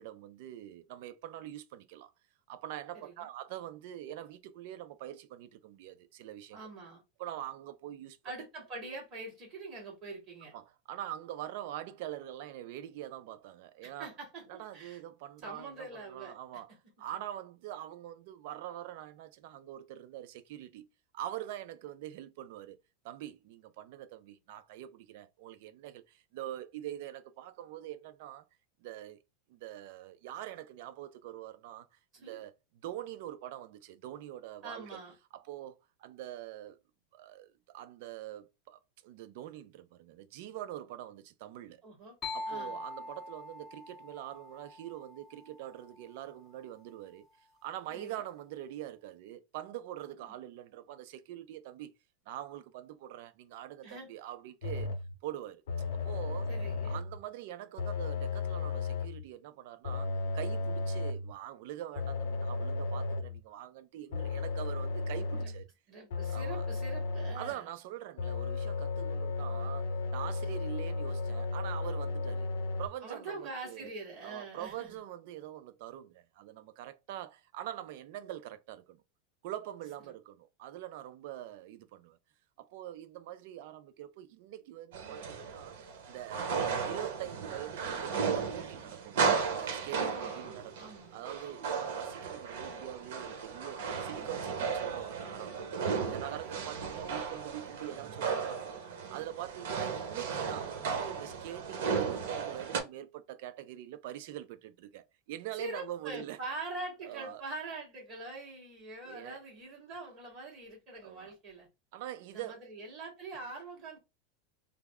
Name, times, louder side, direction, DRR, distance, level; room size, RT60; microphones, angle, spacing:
voice 1, 0.0-2.1 2.5-6.6 7.2-8.2 10.5-14.1 14.5-16.7 17.0-20.9 21.1-22.8 23.0-28.4 28.8-29.2 29.5-32.5 32.8-34.9 35.3-36.8 37.1-41.8 42.3-47.3 47.6-51.9 52.3-54.9 55.2-55.6 55.9-56.5 56.8-65.7 66.3-66.6 67.3-72.5 72.8-73.9 74.2-79.0 79.4-82.2 82.6-85.8 86.1-86.6 86.8-98.7 99.1-106.4 107.0-107.4 109.0-109.4 111.0-111.3 111.9-112.6, right 12 dB, 55° right, 0.5 m, -44 dB
voice 2, 2.9-3.3 6.5-7.0 8.2-10.5 13.8-15.0 15.4-16.4 32.1-32.4 34.6-35.1 41.8-42.2 42.5-42.8 47.9-48.2 50.2-50.3 53.8-54.1 56.5-57.0 65.3-65.5 65.9-67.7 73.0-75.0 90.1-91.2 96.3-96.7 105.5-111.7 112.3-114.0, right 2 dB, 30° right, 2.2 m, -44 dB
sound 1, 42.2-45.9, left 2 dB, 20° left, 0.6 m, -43 dB
sound 2, 54.6-55.1 55.7-57.2 57.8-59.2 59.8-61.3 61.9-63.4 64.1-65.6 66.1-67.5 68.2-72.9, left 3 dB, 80° left, 0.8 m, -34 dB
sound 3, 84.9-102.8, right 5 dB, 75° right, 1.0 m, -35 dB
3.4 x 2.1 x 3.5 m
supercardioid pair, 165°, 0 cm